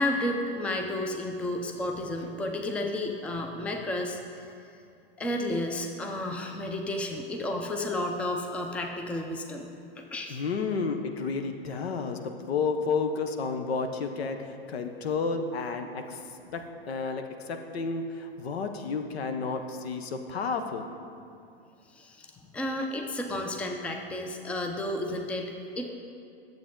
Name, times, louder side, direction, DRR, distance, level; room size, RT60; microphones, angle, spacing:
voice 1, 0.0-4.5 5.2-9.7 10.0-10.4 21.9-25.9, left 1 dB, 5° left, 3 dB, 0.4 m, -32 dB
voice 2, 10.3-16.2 16.5-20.9, left 4 dB, 85° left, 6 dB, 0.9 m, -31 dB
9.9 x 7.6 x 3.7 m, 2.5 s
hypercardioid pair, 125°, 31 cm